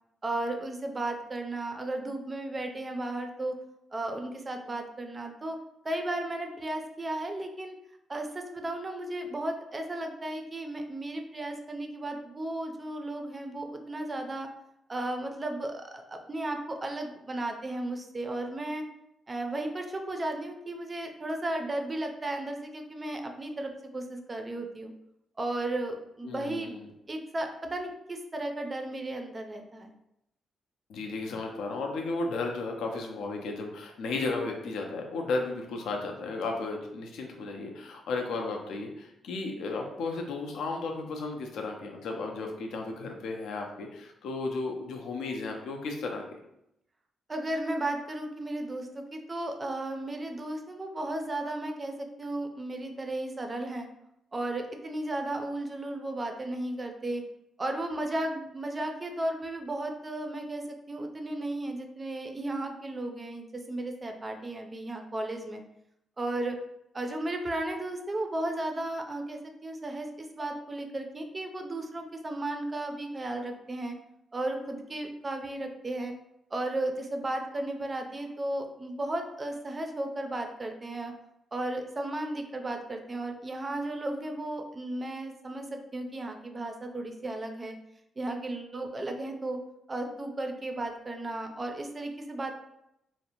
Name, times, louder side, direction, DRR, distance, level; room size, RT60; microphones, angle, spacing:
voice 1, 0.2-3.5 3.9-5.6 5.8-7.8 8.1-14.5 14.9-18.8 19.3-24.9 25.4-26.8 27.1-29.9 47.3-53.9 54.3-57.2 57.6-65.6 66.2-66.6 66.9-74.0 74.3-76.1 76.5-81.1 81.5-85.7 85.9-87.8 88.2-89.6 89.9-92.5, right 1 dB, 25° right, 4 dB, 0.3 m, -34 dB
voice 2, 26.2-26.9 30.9-46.2, left 3 dB, 85° left, 2 dB, 0.4 m, -34 dB
2.6 x 2.0 x 2.8 m, 0.81 s
cardioid pair, 110°, 0 cm